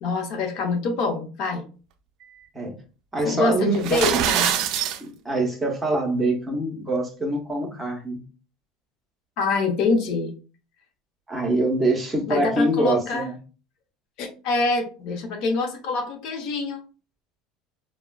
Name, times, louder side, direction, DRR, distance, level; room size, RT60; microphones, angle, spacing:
voice 1, 0.0-1.6 3.2-4.5 9.4-10.3 12.3-13.3 14.2-16.8, left 3 dB, 60° left, 3 dB, 0.8 m, -25 dB
voice 2, 3.1-4.0 5.0-8.2 11.3-13.3, right 2 dB, 10° right, -1 dB, 0.8 m, -24 dB
sound 1, 3.7-5.0, right 9 dB, 55° right, 0.3 m, -23 dB
3.6 x 2.1 x 2.3 m, 0.35 s
cardioid pair, 140°, 0 cm